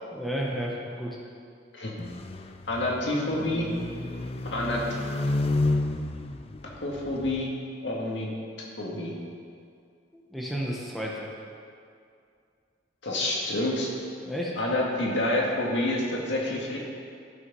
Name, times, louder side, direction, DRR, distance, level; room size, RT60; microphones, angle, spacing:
voice 1, 0.1-1.2 10.1-11.3 14.2-14.5, equal, ahead, -4 dB, 1.0 m, -32 dB
sound 1, 2.0-7.5, left 2 dB, 30° left, 0.4 m, -31 dB
voice 2, 2.7-3.7 4.5-4.8 6.6-7.5 7.8-8.3 8.6-9.1 13.0-13.9 14.6-16.8, left 1 dB, 75° left, -3 dB, 1.9 m, -28 dB
12.5 x 6.0 x 5.5 m, 2.3 s
head